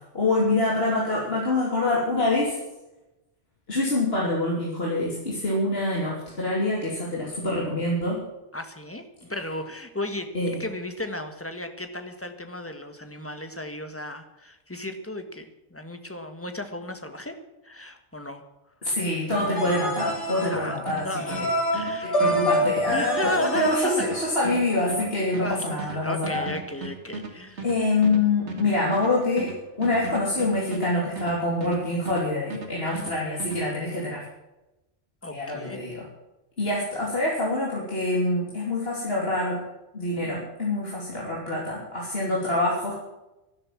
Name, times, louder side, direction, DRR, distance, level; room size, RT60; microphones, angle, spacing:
voice 1, 0.1-2.6 3.7-8.2 10.3-10.6 18.8-21.5 22.2-26.5 27.6-34.2 35.3-36.1 36.6-39.6 39.9-43.0, left 2 dB, 55° left, -4 dB, 3.4 m, -25 dB
voice 2, 8.5-17.4 17.6-18.4 20.5-20.8 21.0-21.5 21.7-22.2 22.9-23.9 25.4-27.6 33.0-33.1 35.2-35.8, left 1 dB, 10° left, 7 dB, 1.6 m, -34 dB
sound 1, 19.3-24.7, equal, 75° left, 4.9 m, -27 dB
sound 2, 19.3-32.3 32.5-33.6, right 3 dB, 70° right, 2.5 m, -37 dB
12.5 x 12.0 x 7.5 m, 0.99 s
omnidirectional pair, 1.2 m